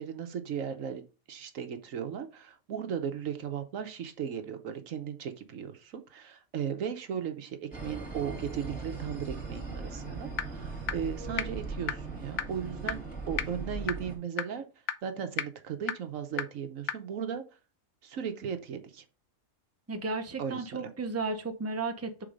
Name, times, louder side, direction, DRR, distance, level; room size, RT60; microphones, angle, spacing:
voice 1, 0.0-13.0 13.3-14.7 15.0-17.4 18.0-19.0 20.4-20.9, right 7 dB, 75° right, 8 dB, 1.2 m, -36 dB
sound 1, 7.7-14.2, right 4 dB, 5° left, 2.4 m, -39 dB
sound 2, 10.4-10.5 10.9-11.0 11.4-11.5 11.9-12.0 12.4-12.5 12.9-13.0 13.4-13.5 13.9-14.0 14.4-14.5 14.9-15.0 15.4-15.5 15.9-16.0 16.4-16.5 16.9-17.0, left 10 dB, 80° left, 1.1 m, -29 dB
voice 2, 19.9-22.2, right 3 dB, 15° right, 5 dB, 0.8 m, -34 dB
6.4 x 3.9 x 5.0 m, 0.32 s
omnidirectional pair, 1.4 m